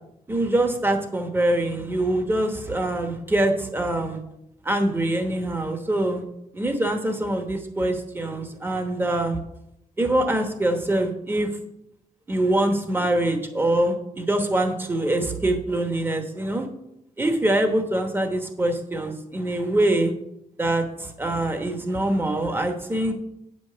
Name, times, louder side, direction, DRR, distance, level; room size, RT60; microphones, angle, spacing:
voice 1, 0.3-4.2 4.6-6.2 6.5-9.4 10.0-11.5 12.3-16.7 17.2-20.1 20.6-23.1, right 1 dB, 15° right, 5 dB, 1.0 m, -24 dB
8.7 x 5.3 x 6.7 m, 0.83 s
wide cardioid pair, 180°, 14 cm